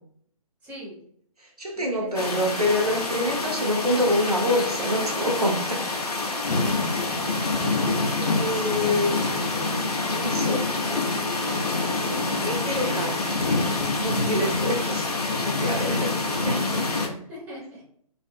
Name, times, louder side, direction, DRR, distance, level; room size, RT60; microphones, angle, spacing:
voice 1, 0.6-1.0 1.8-2.4 10.1-10.8 14.3-15.0 17.1-17.8, equal, 10° right, -6 dB, 0.7 m, -40 dB
voice 2, 1.4-5.8 6.2-6.4 8.2-9.2 10.1-10.6 11.9-13.6 14.0-15.0 15.4-17.2, left 1 dB, 90° right, 0 dB, 0.7 m, -27 dB
sound 1, 2.1-17.1, left 3 dB, 90° left, 0.5 m, -26 dB
2.5 x 2.4 x 2.3 m, 0.62 s
figure-of-eight pair, 140°, 19 cm